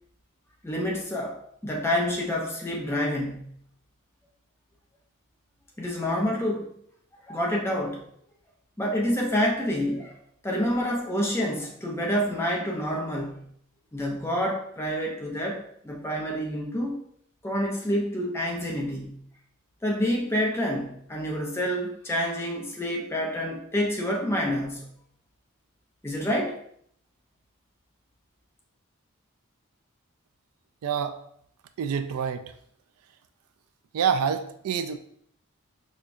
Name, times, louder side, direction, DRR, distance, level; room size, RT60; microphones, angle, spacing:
voice 1, 0.6-3.6 5.8-6.7 7.3-8.0 8.8-10.2 10.4-13.5 13.9-17.0 17.4-19.2 19.8-24.9 26.0-26.6, equal, 10° left, -1 dB, 0.5 m, -28 dB
voice 2, 30.8-31.1 31.8-32.4 33.9-35.0, right 7 dB, 85° right, 9 dB, 0.3 m, -26 dB
5.0 x 2.3 x 2.5 m, 0.68 s
head